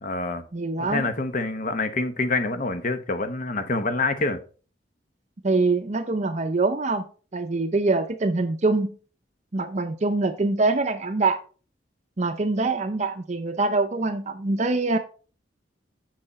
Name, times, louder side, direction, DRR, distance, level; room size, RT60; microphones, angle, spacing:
voice 1, 0.0-0.4 0.8-4.4, left 3 dB, 45° left, 1.0 m, -26 dB
voice 2, 0.5-1.1 5.4-7.1 7.3-9.0 9.5-11.4 12.2-15.0, right 3 dB, 40° right, 0.6 m, -24 dB
7.7 x 5.7 x 4.1 m
head